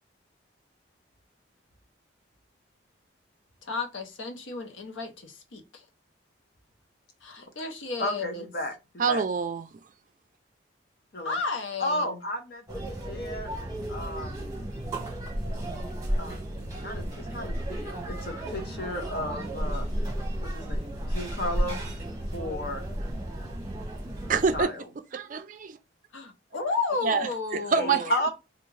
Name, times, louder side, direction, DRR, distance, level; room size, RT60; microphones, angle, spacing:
voice 1, 3.6-5.8 7.2-8.5 11.2-12.2 26.1-28.1, left 4 dB, 85° left, 0.8 m, -33 dB
voice 2, 8.0-8.7 9.1-9.2 11.1-11.4 11.8-13.5 13.9-14.5 16.2-16.4 16.8-19.9 20.4-21.8 22.3-22.8 24.5-24.8 27.7-28.3, left 1 dB, 55° left, 0.9 m, -33 dB
voice 3, 9.0-9.7 24.3-24.7 25.1-25.8 27.0-28.3, right 5 dB, 40° right, 0.4 m, -26 dB
sound 1, 12.7-24.6, right 1 dB, 15° right, 0.9 m, -33 dB
3.5 x 2.4 x 3.2 m
head